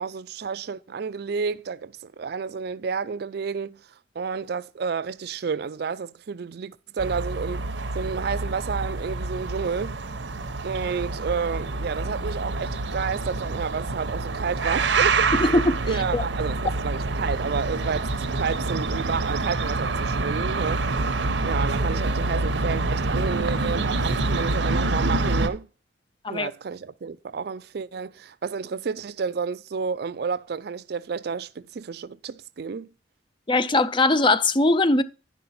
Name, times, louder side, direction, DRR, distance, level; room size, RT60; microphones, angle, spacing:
voice 1, 0.0-3.8 4.2-7.6 7.9-10.0 10.6-15.3 15.8-21.1 21.4-25.7 26.3-32.9, right 5 dB, 60° right, 0.4 m, -30 dB
sound 1, 7.0-25.5, right 3 dB, 85° right, 0.9 m, -26 dB
voice 2, 15.4-15.8 16.1-16.2 26.2-26.5 33.5-35.0, left 2 dB, 25° left, 0.5 m, -20 dB
10.5 x 5.5 x 4.2 m
head